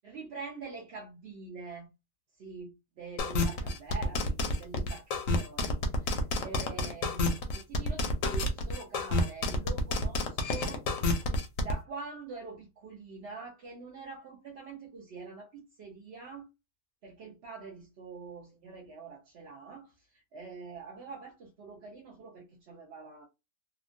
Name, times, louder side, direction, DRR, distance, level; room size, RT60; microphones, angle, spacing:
voice 1, 0.0-1.9 2.4-10.8 11.2-16.5 17.0-23.2, right 4 dB, 60° right, 0.7 m, -45 dB
sound 1, 3.2-11.7, left 2 dB, 65° left, 0.9 m, -29 dB
2.8 x 2.2 x 2.5 m
omnidirectional pair, 1.7 m